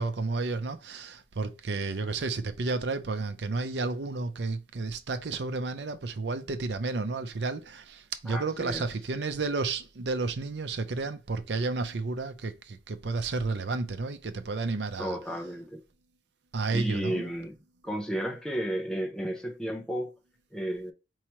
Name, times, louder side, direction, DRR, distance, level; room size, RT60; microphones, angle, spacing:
voice 1, 0.0-15.2 16.5-17.2, right 3 dB, 80° right, 0.6 m, -31 dB
voice 2, 8.2-8.8 15.0-15.8 16.7-17.6 17.8-20.1 20.5-20.9, right 1 dB, 5° left, 0.7 m, -33 dB
4.6 x 2.9 x 3.0 m
head